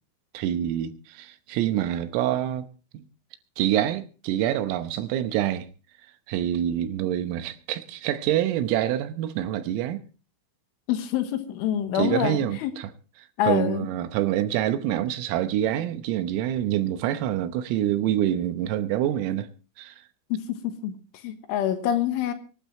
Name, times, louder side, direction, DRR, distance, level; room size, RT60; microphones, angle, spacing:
voice 1, 0.4-2.7 2.9-3.0 3.6-5.7 6.3-10.0 12.0-12.9 13.5-19.5 19.8-20.0, right 12 dB, 85° right, 3.7 m, -26 dB
voice 2, 10.9-12.8 13.4-13.9 20.3-21.0 21.2-22.3, left 10 dB, 75° left, 3.7 m, -26 dB
24.0 x 12.0 x 3.1 m
omnidirectional pair, 5.9 m